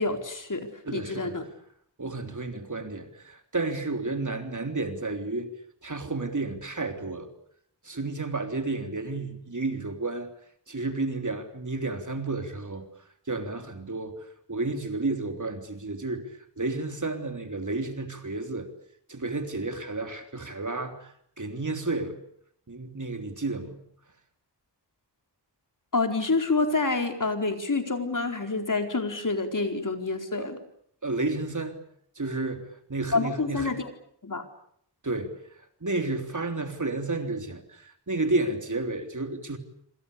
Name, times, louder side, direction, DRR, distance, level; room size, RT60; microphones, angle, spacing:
voice 1, 0.0-1.4 25.9-30.6 33.1-33.9 34.2-34.4, left 3 dB, 45° left, 4.6 m, -27 dB
voice 2, 0.8-1.4 2.0-5.5 5.8-7.3 7.8-10.3 10.7-12.9 13.3-14.1 14.5-18.7 19.1-22.2 22.7-23.8 30.4-30.5 31.0-31.8 32.2-33.8 35.0-35.3 35.8-39.6, right 2 dB, 45° right, 3.5 m, -31 dB
27.0 x 26.5 x 6.8 m
wide cardioid pair, 70°, 42 cm